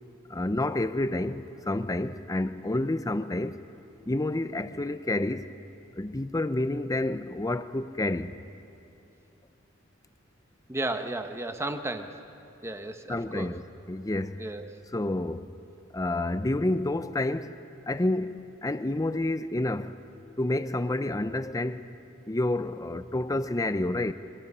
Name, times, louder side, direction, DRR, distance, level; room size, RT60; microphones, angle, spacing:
voice 1, 0.3-3.6 4.1-5.5 6.0-8.3 13.1-13.6 13.9-14.5 14.9-15.6 15.9-17.6 17.9-20.0 20.4-21.9 22.3-24.1, left 1 dB, 15° left, 0.6 m, -29 dB
voice 2, 10.7-12.2 12.6-13.6 14.4-14.8, right 2 dB, 15° right, 1.0 m, -34 dB
27.5 x 24.0 x 5.5 m
head